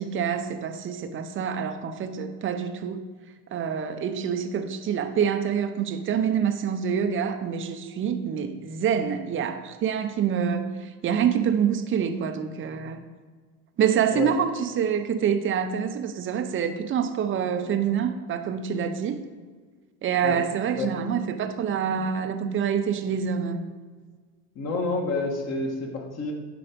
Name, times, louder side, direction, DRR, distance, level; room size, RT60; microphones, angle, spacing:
voice 1, 0.0-3.0 3.5-13.0 13.8-19.2 20.0-23.6, right 7 dB, 30° right, 0.8 m, -26 dB
voice 2, 24.6-26.3, left 3 dB, 35° left, 2.0 m, -28 dB
9.8 x 5.8 x 5.2 m
supercardioid pair, 115°, 43 cm